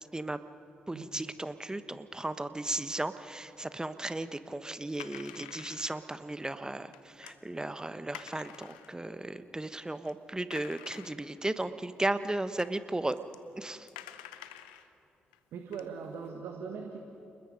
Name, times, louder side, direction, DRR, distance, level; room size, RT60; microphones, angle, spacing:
voice 1, 0.9-13.2 13.6-13.9, right 2 dB, 15° right, 12 dB, 1.2 m, -35 dB
sound 1, 4.9-6.1 6.9-7.4 8.1-9.0 9.6-9.7 10.0-10.1 10.5-11.5 12.3-12.4 12.6-12.7 13.1-13.4 13.9-14.9 15.3-15.4 15.7-16.3, left 12 dB, 85° left, 0.7 m, -48 dB
voice 2, 15.5-17.0, right 6 dB, 70° right, 3 dB, 1.6 m, -40 dB
29.5 x 21.0 x 5.3 m, 2.8 s
hypercardioid pair, 40°, 4 cm